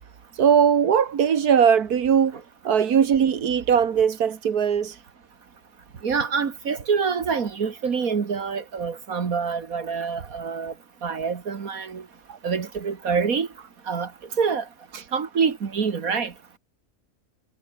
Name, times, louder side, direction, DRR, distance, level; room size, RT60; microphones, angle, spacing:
voice 1, 0.3-2.4 2.6-5.0 12.3-12.4 14.9-15.0, right 7 dB, 85° right, 1.9 m, -20 dB
voice 2, 6.0-10.7 11.0-12.0 12.4-13.5 13.9-14.1 14.4-14.7 15.1-16.3, right 5 dB, 70° right, 2.1 m, -26 dB
omnidirectional pair, 1.6 m